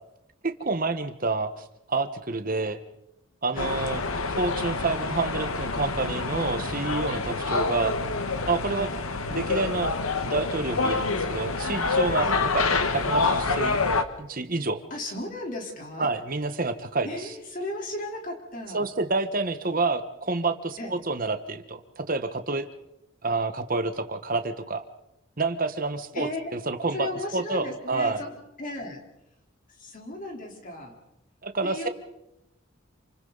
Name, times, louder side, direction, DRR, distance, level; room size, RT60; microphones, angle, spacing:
voice 1, 0.4-2.8 3.4-4.0 4.3-7.9 8.5-8.9 9.3-9.9 10.2-12.3 12.5-13.8 14.2-14.8 16.0-17.3 18.7-22.7 23.2-24.8 25.4-27.1 27.3-28.2 31.4-31.9, right 3 dB, 40° right, 9 dB, 1.3 m, -28 dB
sound 1, 3.6-14.0, left 3 dB, 85° left, 1.4 m, -27 dB
voice 2, 14.9-16.1 17.0-18.9 20.8-20.9 26.1-26.5 26.9-29.0 29.8-31.0 31.6-31.9, left 1 dB, 40° left, 1 dB, 3.7 m, -35 dB
28.0 x 26.0 x 4.0 m, 0.87 s
head